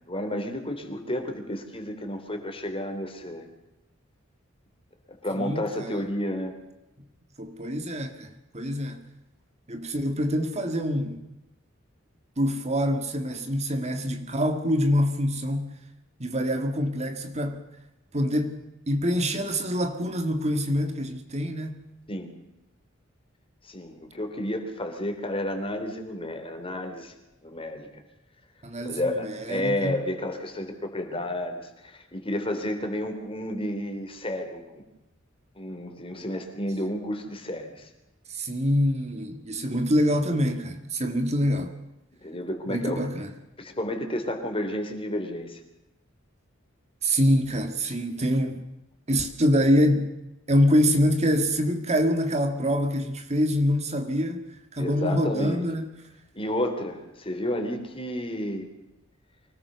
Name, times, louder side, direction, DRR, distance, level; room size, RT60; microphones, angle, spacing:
voice 1, 0.1-3.4 5.1-6.6 22.1-22.3 23.6-27.1 27.4-27.9 28.8-34.8 35.5-37.9 42.2-43.0 43.6-45.6 54.8-55.6 56.3-58.7, left 1 dB, 25° left, 3.5 m, -31 dB
voice 2, 5.3-6.0 7.4-9.0 9.7-11.2 12.4-15.7 16.2-17.7 18.1-21.8 28.6-30.0 38.3-41.7 42.7-43.3 47.0-48.6 49.1-50.1 50.5-54.5 54.7-55.9, equal, 35° right, 1.7 m, -25 dB
24.5 x 18.5 x 6.9 m
head